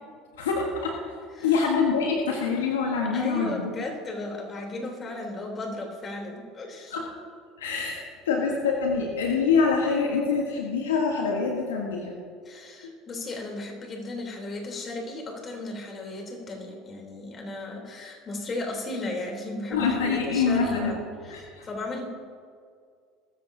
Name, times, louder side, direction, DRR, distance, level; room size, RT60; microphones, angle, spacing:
voice 1, 0.4-0.9 1.4-3.6 6.9-7.1 7.6-12.1 19.7-20.9 21.3-21.6, left 5 dB, 80° left, 0 dB, 1.5 m, -25 dB
voice 2, 3.1-7.0 12.5-21.4 21.6-22.1, left 2 dB, 35° left, 1 dB, 3.6 m, -35 dB
21.5 x 13.5 x 2.9 m, 2.2 s
hypercardioid pair, 70°, 0 cm